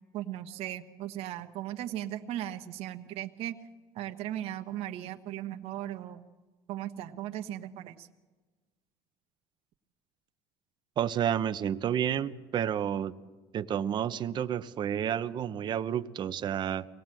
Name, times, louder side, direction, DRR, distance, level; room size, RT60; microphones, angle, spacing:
voice 1, 0.1-3.6 3.9-6.2 6.7-8.1, right 12 dB, 60° right, 7 dB, 1.2 m, -37 dB
voice 2, 11.0-13.1 13.5-16.9, right 9 dB, 40° right, 12 dB, 0.9 m, -30 dB
24.0 x 18.5 x 7.7 m, 1.3 s
supercardioid pair, 105°, 12 cm